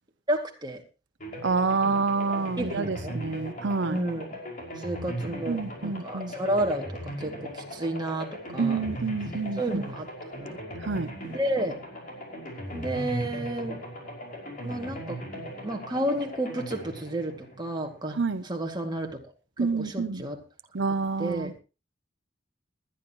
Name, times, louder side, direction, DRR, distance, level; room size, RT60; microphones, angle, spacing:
voice 1, 0.3-0.8 1.8-1.9 2.2-3.2 3.9-4.4 4.8-8.8 9.5-10.1 10.3-10.6 11.2-11.8 12.7-13.8 14.6-15.2 15.6-18.2 18.4-19.2 19.6-20.4 21.2-21.5, right 1 dB, 20° right, 2.3 m, -31 dB
sound 1, 1.2-18.1, equal, 45° left, 5.6 m, -38 dB
voice 2, 1.4-4.0 5.5-6.3 8.6-9.8 10.8-11.1 18.1-18.4 19.6-20.2 20.7-21.6, right 4 dB, 65° right, 0.7 m, -28 dB
20.0 x 11.5 x 3.0 m
head